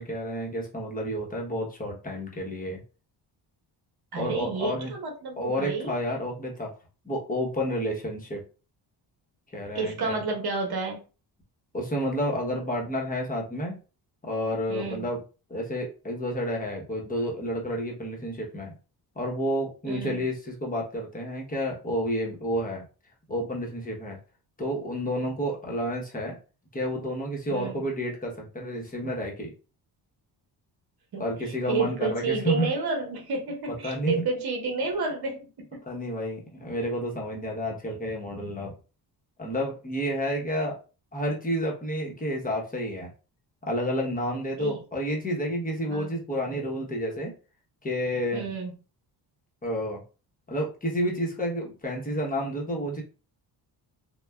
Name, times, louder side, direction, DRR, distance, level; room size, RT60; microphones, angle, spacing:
voice 1, 0.0-2.8 4.2-4.9 5.4-6.7 7.0-8.4 9.5-10.2 11.7-13.8 14.2-15.2 15.5-18.7 19.2-22.8 23.3-24.2 24.6-26.4 26.7-29.5 31.2-32.7 33.8-34.2 35.9-38.7 39.4-40.8 41.1-43.1 43.6-47.3 47.8-48.5 49.6-50.0 50.5-53.0, equal, 20° left, -1 dB, 0.9 m, -30 dB
voice 2, 4.1-5.9 9.7-11.0 14.7-15.1 19.8-20.2 27.5-27.7 31.1-35.8 44.6-44.8 45.9-46.2 48.3-48.7, right 4 dB, 60° right, 2 dB, 1.0 m, -30 dB
3.2 x 2.2 x 2.2 m, 0.34 s
cardioid pair, 125°, 43 cm